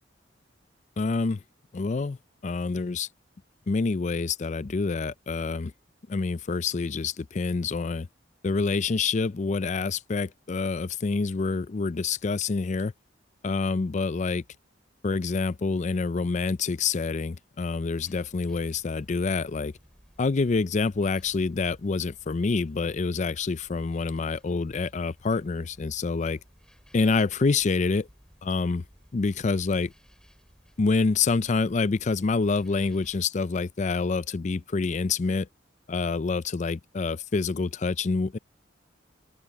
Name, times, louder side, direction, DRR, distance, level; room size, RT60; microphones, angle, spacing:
voice 1, 1.0-1.4 1.7-2.2 2.4-3.1 3.7-5.7 6.1-8.1 8.4-12.9 13.4-14.4 15.0-19.7 20.2-26.4 26.9-28.1 28.4-28.8 29.1-29.9 30.8-35.5 35.9-38.4, left 4 dB, 40° left, 0.4 m, -27 dB
sound 1, 17.8-33.3, equal, 5° left, 4.8 m, -57 dB
open air
head